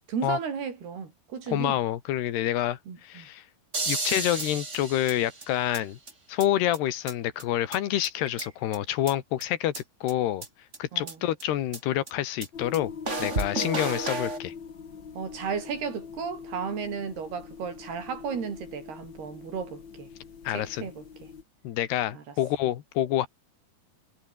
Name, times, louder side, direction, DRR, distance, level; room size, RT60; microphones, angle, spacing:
voice 1, 0.1-1.8 2.9-3.3 10.9-11.1 13.6-13.8 15.1-20.1 20.5-21.3 22.1-22.4, right 6 dB, 75° right, 6.6 m, -34 dB
voice 2, 1.5-3.4 3.9-6.0 6.3-9.7 10.0-10.5 10.8-12.9 13.2-14.5 20.5-20.9 21.6-23.3, left 12 dB, 90° left, 3.7 m, -27 dB
sound 1, 3.7-5.8 6.1-6.2 6.4-6.5 6.7-6.8 7.1-7.2 7.4-7.5 7.7-7.8 8.0-8.8 9.1-9.2 9.4-9.5 9.7-9.8 10.1-10.2 10.4-10.5 10.7-10.8 11.1-11.2 11.4-11.5 11.7-11.8 12.1-12.2 12.4-12.5 12.7-12.8 13.1-14.4, right 3 dB, 20° right, 3.0 m, -32 dB
sound 2, 12.5-21.4, left 6 dB, 35° left, 2.2 m, -42 dB
omnidirectional pair, 4.6 m